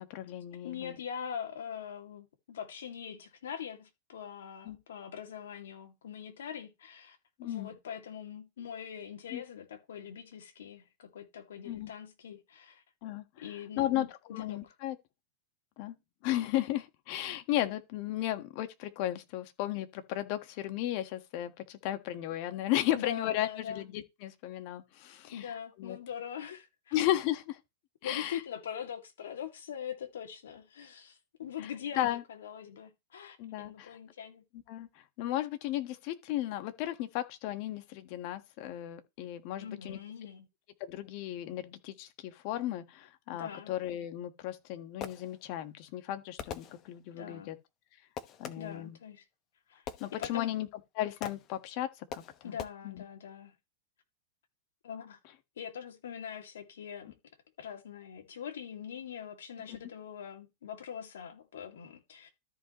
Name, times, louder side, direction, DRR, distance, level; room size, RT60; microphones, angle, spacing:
voice 1, 0.0-1.0 4.6-4.8 7.4-7.7 9.3-9.4 11.6-11.9 13.0-13.2 13.8-15.0 15.8-15.9 16.2-25.4 25.8-26.0 26.9-27.6 28.0-28.4 31.6-31.7 32.0-32.2 33.4-33.9 34.7-34.9 35.2-40.0 40.8-47.5 48.4-49.0 50.0-50.7 51.0-52.6 52.8-53.0 59.7-59.8, left 13 dB, 55° left, 1.5 m, -35 dB
voice 2, 0.6-12.8 13.4-14.7 23.0-23.8 25.3-27.0 28.0-34.4 39.6-40.5 43.3-43.7 47.1-47.5 48.6-49.2 49.7-49.8 50.2-50.5 52.4-53.5 54.8-55.2 55.6-57.2 57.6-62.3, left 8 dB, 80° left, 2.4 m, -42 dB
Fireworks, 44.5-45.6 46.4-47.2 48.2-48.9 49.9-50.7 51.2-51.6 52.1-52.7, left 8 dB, 35° left, 0.9 m, -43 dB
13.5 x 5.1 x 3.1 m
hypercardioid pair, 120°, 0 cm